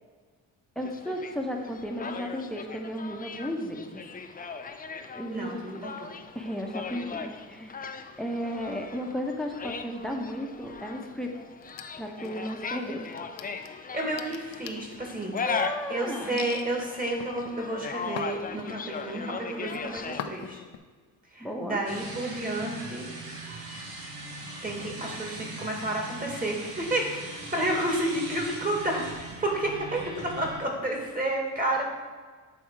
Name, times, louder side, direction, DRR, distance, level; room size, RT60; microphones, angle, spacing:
sound 1, 0.8-20.2, left 5 dB, 25° left, 0.5 m, -38 dB
voice 1, 0.8-4.0 5.1-5.8 6.3-7.8 8.2-11.3 12.0-13.1 15.3-16.4 21.4-21.8, equal, ahead, 2 dB, 1.0 m, -34 dB
voice 2, 5.3-6.1 13.6-15.4 15.9-20.6 21.3-23.1 24.6-31.8, right 1 dB, 25° right, 0 dB, 2.0 m, -31 dB
sound 2, 11.6-12.6 13.0-15.7 16.4-16.7 17.2-19.0 19.4-19.8 20.2-20.8, left 9 dB, 75° left, 0.6 m, -42 dB
sound 3, 21.9-30.6, right 2 dB, 85° right, 1.5 m, -40 dB
8.3 x 3.6 x 4.7 m, 1.5 s
cardioid pair, 75°, 35 cm